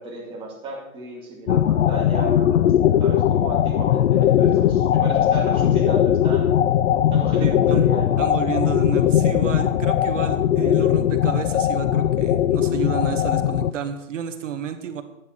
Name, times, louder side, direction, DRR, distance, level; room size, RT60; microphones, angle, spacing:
voice 1, 0.0-2.5 3.0-6.6 7.1-8.4, right 2 dB, 15° right, -4 dB, 2.5 m, -34 dB
sound 1, 1.5-13.7, left 10 dB, 65° left, 0.6 m, -19 dB
voice 2, 7.4-15.0, right 7 dB, 65° right, 8 dB, 1.6 m, -31 dB
11.0 x 9.5 x 4.6 m, 0.88 s
hypercardioid pair, 165°, 40 cm